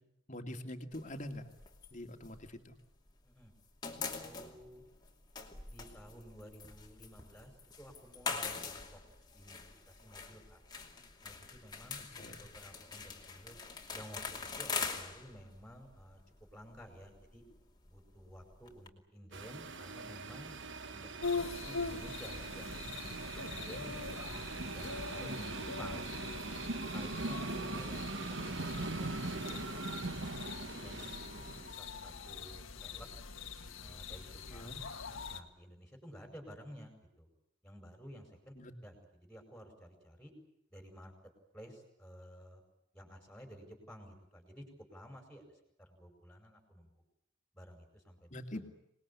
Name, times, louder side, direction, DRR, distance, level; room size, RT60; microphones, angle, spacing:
voice 1, 0.3-1.5 1.9-2.7 12.2-12.4 27.6-27.7 34.5-34.8 38.6-38.7 48.3-48.7, left 1 dB, 35° left, 6 dB, 2.5 m, -44 dB
sound 1, 0.9-3.2 3.4-18.9, left 5 dB, 20° left, 2.6 m, -44 dB
voice 2, 3.8-4.8 5.7-7.5 7.8-9.0 9.3-9.6 9.9-10.6 11.2-13.6 13.9-16.2 16.5-17.4 17.9-20.5 20.9-22.7 22.9-24.3 24.6-26.4 26.9-29.9 30.5-33.1 33.8-34.8 35.3-37.3 37.6-38.5 38.8-40.3 40.7-41.1 41.5-42.6 42.9-44.6 44.9-45.4 45.8-46.9 47.5-48.6, equal, 5° left, 4 dB, 5.2 m, -53 dB
sound 2, 19.3-31.7, right 3 dB, 60° right, 1.3 m, -41 dB
sound 3, 21.2-35.4, left 4 dB, 70° left, 1.9 m, -43 dB
26.5 x 20.5 x 8.5 m, 0.77 s
head